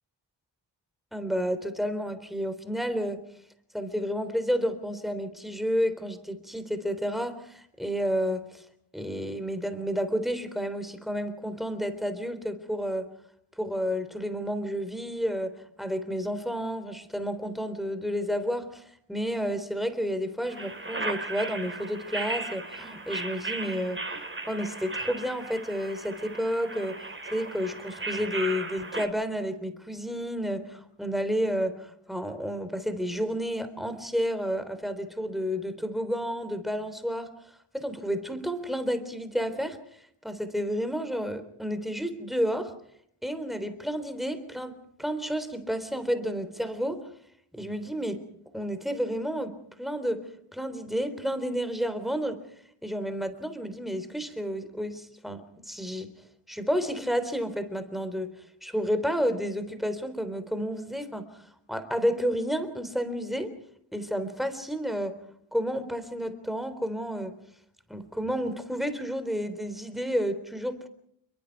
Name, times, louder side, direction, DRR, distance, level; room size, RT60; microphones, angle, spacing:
voice 1, 1.1-3.2 3.7-8.6 8.9-13.1 13.6-24.0 24.5-27.0 27.3-37.3 37.7-39.8 40.2-42.7 43.2-47.0 47.5-48.2 48.5-50.2 50.5-52.4 52.8-56.1 56.5-58.3 58.6-61.3 61.7-63.5 63.9-65.2 65.5-67.3 67.9-70.9, equal, ahead, 11 dB, 3.6 m, -31 dB
sound 1, 20.5-29.1, right 2 dB, 25° right, 4.8 m, -36 dB
29.5 x 22.5 x 4.7 m, 0.69 s
wide cardioid pair, 105°, 46 cm